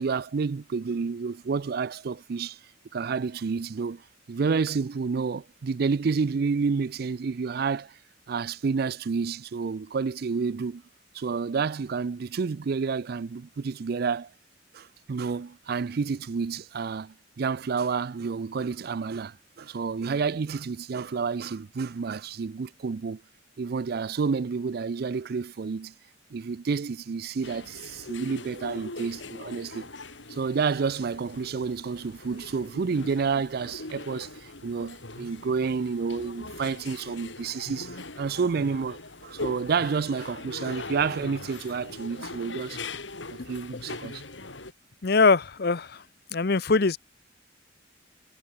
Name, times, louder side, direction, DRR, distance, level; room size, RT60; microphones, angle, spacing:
voice 1, 0.0-2.6 2.9-8.0 8.3-10.8 11.1-14.3 14.7-23.2 23.6-25.9 26.3-29.9 30.3-42.8 43.3-44.2, right 5 dB, 55° right, 0.4 m, -29 dB
sound 1, 27.4-44.7, left 2 dB, 80° left, 4.4 m, -41 dB
voice 2, 43.7-44.1 45.0-46.0 46.3-47.0, left 4 dB, 55° left, 0.8 m, -23 dB
head